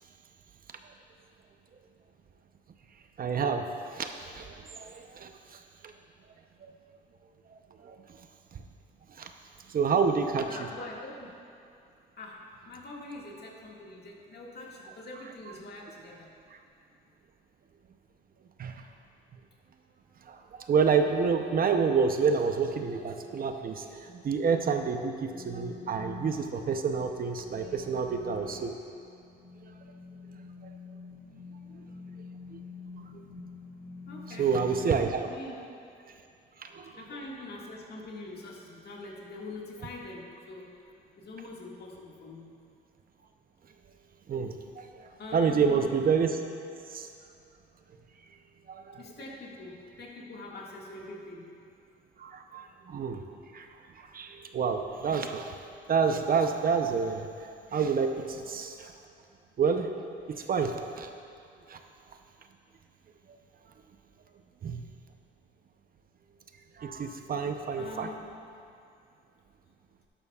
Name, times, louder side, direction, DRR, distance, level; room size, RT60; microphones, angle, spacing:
voice 1, 3.2-5.3 6.6-6.7 7.8-8.0 9.2-9.3 9.7-10.5 18.6-18.7 20.3-20.4 20.7-28.7 33.0-33.1 34.4-35.3 36.6-36.9 44.3-44.9 45.3-46.4 46.9-47.1 48.7-49.0 52.2-53.2 53.5-53.7 54.1-55.5 55.9-57.3 57.7-58.9 59.6-59.9 60.5-61.1 61.7-61.8 64.6-64.8 66.8-68.1, right 5 dB, 45° right, 5 dB, 0.7 m, -28 dB
voice 2, 10.3-11.3 12.2-16.3 34.1-35.6 36.9-40.9 41.2-42.5 45.2-45.8 49.0-51.5 67.8-68.3, left 2 dB, 55° left, -2 dB, 1.9 m, -44 dB
sound 1, 25.2-34.9, left 4 dB, 90° left, 1.9 m, -47 dB
12.0 x 11.5 x 2.4 m, 2.5 s
cardioid pair, 90°, 20 cm